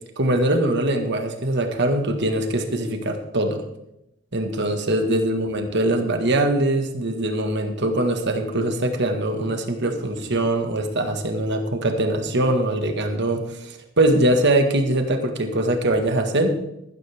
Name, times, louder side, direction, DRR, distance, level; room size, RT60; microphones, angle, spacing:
voice 1, 0.2-3.6 4.3-16.5, right 1 dB, 55° right, 5 dB, 1.7 m, -22 dB
14.5 x 13.0 x 3.6 m, 0.84 s
head